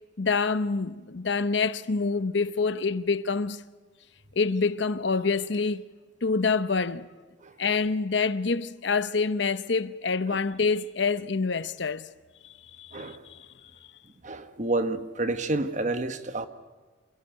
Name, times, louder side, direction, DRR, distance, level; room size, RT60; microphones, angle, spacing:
voice 1, 0.2-3.6 4.4-5.8 6.2-7.1 7.6-12.1 12.8-13.5, left 4 dB, 65° left, 0.8 m, -26 dB
voice 2, 14.2-16.5, right 2 dB, 40° right, 1.3 m, -29 dB
27.0 x 16.5 x 9.1 m
head